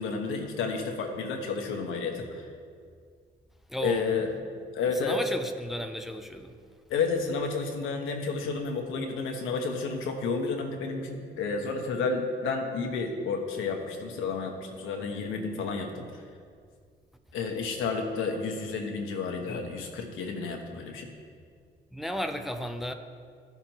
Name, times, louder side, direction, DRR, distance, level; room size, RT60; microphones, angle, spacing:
voice 1, 0.0-2.5 3.8-4.3 4.7-5.2 6.9-16.0 17.3-21.1, left 4 dB, 90° left, 2 dB, 1.1 m, -31 dB
voice 2, 3.7-4.0 5.0-6.6 21.9-22.9, equal, ahead, 6 dB, 0.5 m, -34 dB
13.5 x 5.9 x 3.0 m, 2.1 s
cardioid pair, 90°, 20 cm